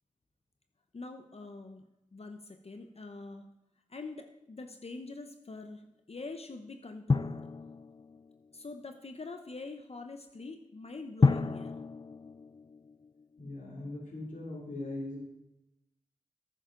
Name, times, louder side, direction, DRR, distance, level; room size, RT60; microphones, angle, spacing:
voice 1, 0.9-3.5 3.9-7.5 8.5-11.8, left 3 dB, 50° left, 6 dB, 0.8 m, -44 dB
Drum, 7.1-8.6 11.2-13.4, left 4 dB, 35° left, 0.4 m, -30 dB
voice 2, 13.4-15.2, left 2 dB, 75° left, -3 dB, 2.8 m, -40 dB
11.5 x 9.8 x 3.8 m, 0.90 s
cardioid pair, 45°, 13 cm